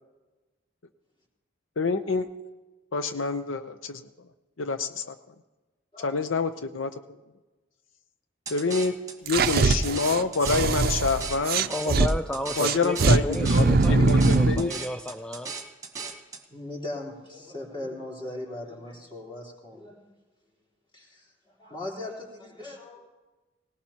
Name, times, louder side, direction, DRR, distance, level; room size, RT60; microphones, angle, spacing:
voice 1, 1.8-2.3 2.9-4.0 4.6-5.1 6.0-6.9 8.5-9.0 9.2-12.2 12.6-14.7, left 4 dB, 90° left, 9 dB, 0.7 m, -27 dB
voice 2, 5.9-6.6 16.5-20.1 20.9-23.1, left 2 dB, 25° left, -2 dB, 3.6 m, -39 dB
sound 1, 8.5-16.4, right 4 dB, 20° right, 1.4 m, -38 dB
sound 2, 9.3-12.1 12.6-14.7, right 3 dB, 50° right, 0.5 m, -22 dB
voice 3, 11.7-15.5, left 1 dB, 5° left, 7 dB, 0.4 m, -33 dB
19.0 x 19.0 x 2.9 m, 1.2 s
head